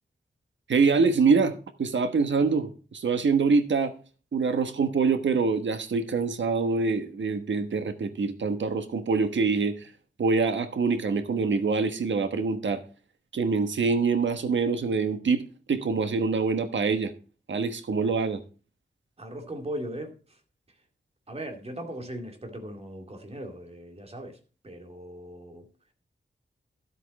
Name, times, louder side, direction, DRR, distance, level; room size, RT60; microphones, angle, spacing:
voice 1, 0.7-3.9 4.3-9.9 10.2-12.8 13.3-15.4 15.7-17.1 17.5-18.4, right 4 dB, 80° right, 1.3 m, -25 dB
voice 2, 19.2-20.4 21.3-24.4 24.6-25.7, right 1 dB, 35° right, 2.3 m, -38 dB
12.5 x 8.2 x 4.2 m
wide cardioid pair, 135°, 19 cm